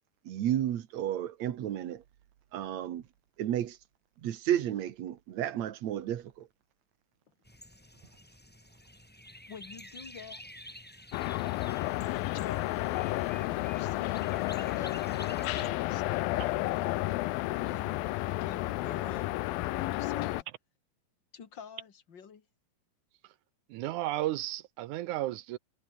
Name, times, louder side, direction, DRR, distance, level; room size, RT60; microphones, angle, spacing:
voice 1, 0.2-2.0 2.5-3.0 3.4-3.8 4.2-6.5, right 11 dB, 60° right, 2.4 m, -32 dB
sound 1, 7.4-15.7, left 1 dB, 5° left, 1.0 m, -50 dB
voice 2, 9.5-10.7 12.3-12.7 13.5-14.3 14.6-17.0 17.5-20.5 21.3-22.4, left 7 dB, 35° left, 2.6 m, -48 dB
sound 2, 11.1-20.4, left 18 dB, 85° left, 2.6 m, -31 dB
voice 3, 23.7-25.6, right 15 dB, 75° right, 1.9 m, -33 dB
omnidirectional pair, 4.1 m